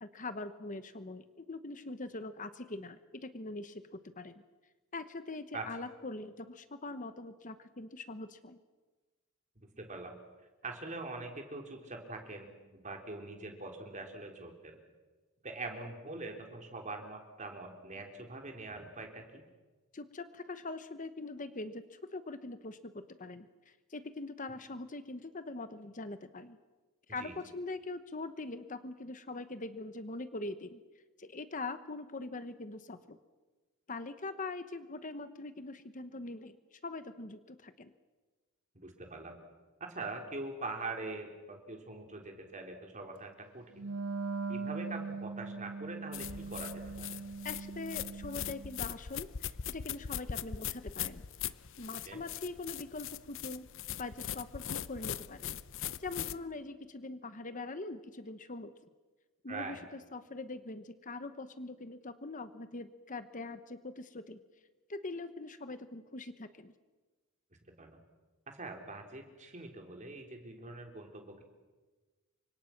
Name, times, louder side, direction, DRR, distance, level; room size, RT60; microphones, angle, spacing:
voice 1, 0.0-4.3 4.9-8.6 19.9-23.5 23.9-26.6 27.1-30.8 31.2-33.2 33.9-37.9 47.4-51.2 51.8-53.7 54.0-55.6 56.0-58.7 59.4-64.4 64.9-66.7, left 3 dB, 35° left, 11 dB, 1.0 m, -42 dB
voice 2, 9.6-10.1 10.6-14.8 15.4-19.4 27.2-27.4 38.7-39.4 39.9-43.9 44.5-47.2 52.1-52.2 59.5-59.8 67.8-68.0 68.5-71.4, right 3 dB, 35° right, 3 dB, 3.8 m, -43 dB
Wind instrument woodwind instrument, 43.7-48.8, right 4 dB, 80° right, 1.1 m, -40 dB
sound 1, 46.1-56.4, left 9 dB, 60° left, 0.7 m, -40 dB
29.5 x 25.5 x 6.0 m, 1.3 s
head